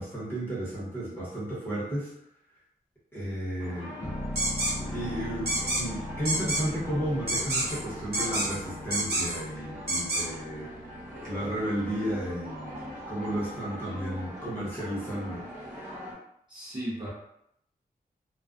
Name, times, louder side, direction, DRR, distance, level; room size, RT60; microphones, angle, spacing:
voice 1, 0.0-2.1 3.1-4.0 4.9-10.7 11.3-15.5, right 1 dB, 15° left, -8 dB, 1.0 m, -33 dB
sound 1, 3.6-16.1, equal, 50° right, 1.0 m, -42 dB
sound 2, 4.0-15.6 15.9-16.0, left 1 dB, 30° left, 0.4 m, -42 dB
sound 3, 4.4-4.7 5.5-5.8 6.2-6.6 7.3-7.8 8.1-8.6 8.9-9.4 9.9-10.2, right 1 dB, 85° right, 0.8 m, -28 dB
voice 2, 16.5-17.1, right 1 dB, 30° right, -8 dB, 0.6 m, -35 dB
2.3 x 2.2 x 2.4 m, 0.75 s
wide cardioid pair, 155°, 16 cm